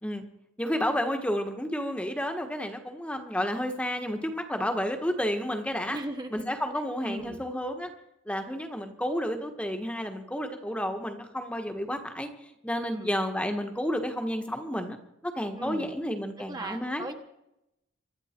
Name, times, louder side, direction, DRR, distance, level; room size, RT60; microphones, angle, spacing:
voice 1, 0.6-6.0 6.3-7.9 8.3-12.3 12.6-15.0 15.2-17.1, equal, 5° left, 5 dB, 1.4 m, -31 dB
voice 2, 5.9-6.4 7.0-7.4 12.8-13.1 15.6-15.9 16.4-17.1, right 1 dB, 20° right, 5 dB, 1.3 m, -37 dB
24.5 x 12.0 x 4.5 m, 0.83 s
head